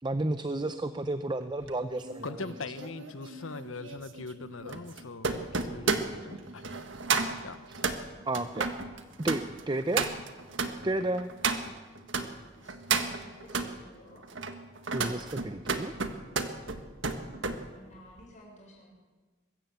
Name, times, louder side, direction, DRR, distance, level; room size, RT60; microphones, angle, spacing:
voice 1, 0.0-2.4 8.3-8.7 9.2-10.1 10.8-11.3 14.9-15.9, right 2 dB, 20° right, 10 dB, 0.6 m, -32 dB
sound 1, 1.6-12.3 12.7-13.7 14.2-17.6 17.9-18.2, right 4 dB, 65° right, 1.6 m, -33 dB
voice 2, 2.2-6.6 7.4-7.6, left 3 dB, 80° left, 12 dB, 1.1 m, -41 dB
voice 3, 13.1-14.2 17.0-18.9, equal, 40° left, -2 dB, 6.5 m, -54 dB
23.0 x 14.0 x 8.2 m, 1.3 s
head